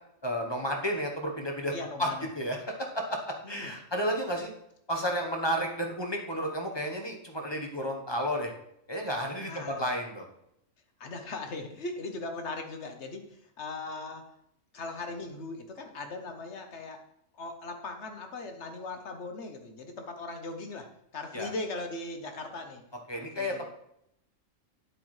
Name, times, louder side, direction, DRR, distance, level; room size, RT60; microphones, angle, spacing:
voice 1, 0.2-1.7 2.0-2.1 2.3-3.2 3.5-4.5 4.9-8.5 8.9-10.3 21.3-21.5 23.1-23.7, equal, 20° left, 2 dB, 1.0 m, -32 dB
voice 2, 1.7-2.2 3.4-3.7 9.5-9.9 11.0-14.2 14.7-17.0 17.3-20.9 21.1-22.8 23.1-23.7, left 3 dB, 60° left, 5 dB, 1.3 m, -39 dB
9.2 x 7.9 x 3.2 m, 0.77 s
omnidirectional pair, 1.4 m